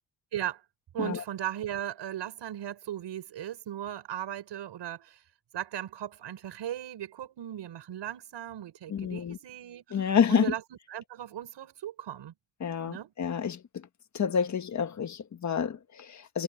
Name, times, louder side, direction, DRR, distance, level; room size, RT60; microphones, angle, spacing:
voice 1, 0.3-0.6 0.9-5.2 5.5-10.6 10.9-12.3 12.9-13.1, right 11 dB, 75° right, 6.5 m, -37 dB
voice 2, 8.9-9.4 9.9-10.5 12.6-13.8 14.1-16.4, left 7 dB, 40° left, 1.5 m, -28 dB
wide cardioid pair, 160°, 43 cm